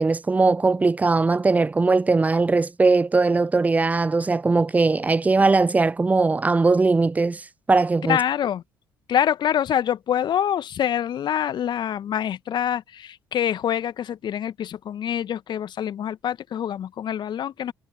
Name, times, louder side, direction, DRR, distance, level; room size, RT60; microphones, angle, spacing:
voice 1, 0.0-8.2, right 3 dB, 15° right, 0.4 m, -20 dB
voice 2, 8.0-8.6 9.1-17.7, left 10 dB, 50° left, 1.6 m, -25 dB
figure-of-eight pair, 50°, 10 cm